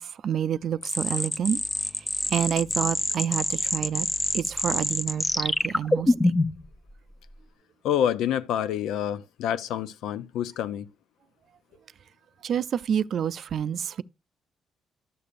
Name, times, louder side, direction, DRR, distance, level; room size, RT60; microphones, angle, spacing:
voice 1, 0.0-1.6 2.3-4.1 4.3-6.3 12.4-14.0, right 8 dB, 60° right, 0.4 m, -28 dB
sound 1, 0.8-6.7, left 2 dB, 15° left, 0.6 m, -26 dB
voice 2, 7.8-10.9, left 10 dB, 85° left, 0.6 m, -27 dB
12.5 x 6.7 x 2.5 m
cardioid pair, 90°, 0 cm